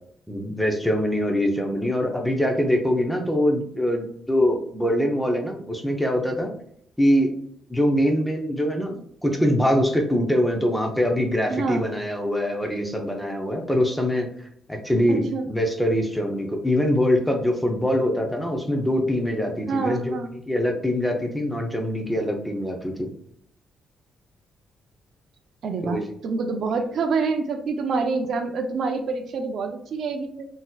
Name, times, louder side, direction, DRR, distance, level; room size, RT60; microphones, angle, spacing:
voice 1, 0.3-6.5 7.0-7.3 7.7-14.3 14.7-23.1 25.8-26.0, equal, 5° left, 2 dB, 0.5 m, -23 dB
voice 2, 11.5-11.9 15.1-15.5 19.7-20.3 25.6-30.5, right 4 dB, 50° right, 6 dB, 0.4 m, -27 dB
3.9 x 2.6 x 2.2 m, 0.66 s
cardioid pair, 165°, 0 cm